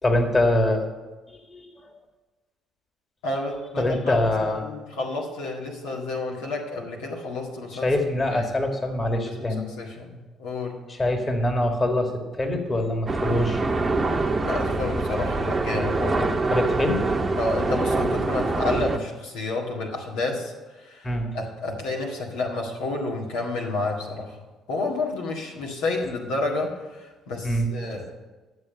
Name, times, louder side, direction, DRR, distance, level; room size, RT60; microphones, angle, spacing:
voice 1, 0.0-0.8 1.3-1.7 3.8-4.7 7.8-9.7 10.9-13.6 16.4-17.0 21.0-21.4 27.4-27.7, left 1 dB, 30° left, 4 dB, 1.9 m, -24 dB
voice 2, 3.2-7.9 8.3-8.5 9.3-10.8 14.4-16.3 17.3-20.5 20.8-21.1 21.3-24.4 24.7-28.1, left 2 dB, 85° left, -1 dB, 1.8 m, -30 dB
sound 1, 13.1-19.0, right 3 dB, 25° right, 0.9 m, -25 dB
11.0 x 7.5 x 6.6 m, 1.2 s
hypercardioid pair, 60°, 0 cm